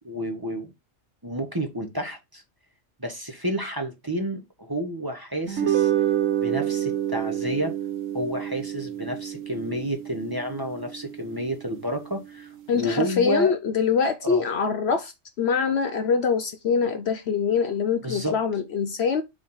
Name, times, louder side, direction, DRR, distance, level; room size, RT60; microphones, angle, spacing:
voice 1, 0.0-0.7 1.2-2.4 3.0-5.9 6.4-7.7 8.1-13.6 14.2-14.4 18.0-18.4, equal, 20° right, 1.0 m, -30 dB
sound 1, 5.5-12.0, right 11 dB, 80° right, 1.2 m, -28 dB
voice 2, 12.7-15.1 15.4-19.2, left 6 dB, 60° left, 0.9 m, -24 dB
5.2 x 3.3 x 5.4 m
omnidirectional pair, 1.3 m